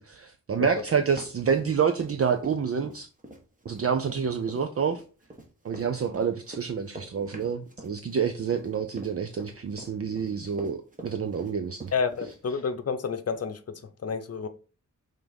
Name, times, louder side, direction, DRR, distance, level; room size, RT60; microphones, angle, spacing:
voice 1, 0.0-3.1 3.7-5.0 5.6-11.9, right 6 dB, 45° right, 0.5 m, -28 dB
Run, 0.7-2.2 2.4-12.4, right 1 dB, 25° right, 1.3 m, -44 dB
voice 2, 11.9-13.6 14.0-14.5, left 5 dB, 50° left, 0.7 m, -29 dB
5.7 x 3.6 x 5.2 m
wide cardioid pair, 165°, 32 cm